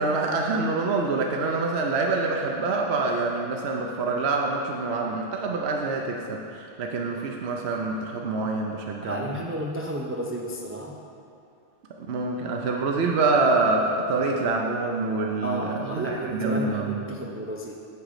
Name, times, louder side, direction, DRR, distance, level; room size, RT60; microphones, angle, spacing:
voice 1, 0.0-9.4 12.0-17.0, right 3 dB, 70° right, 0 dB, 1.0 m, -26 dB
voice 2, 9.0-10.9 15.4-17.7, right 1 dB, 20° right, -1 dB, 0.4 m, -32 dB
8.0 x 7.2 x 5.0 m, 2.6 s
omnidirectional pair, 1.1 m